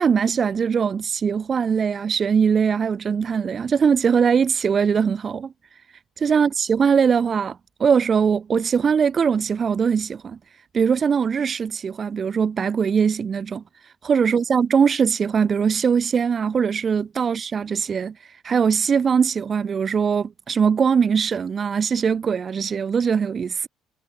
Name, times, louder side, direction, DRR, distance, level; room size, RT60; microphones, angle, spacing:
voice 1, 0.0-5.5 6.2-10.4 10.7-13.6 14.0-23.7, right 6 dB, 40° right, 0.3 m, -21 dB
figure-of-eight pair, 50°, 0 cm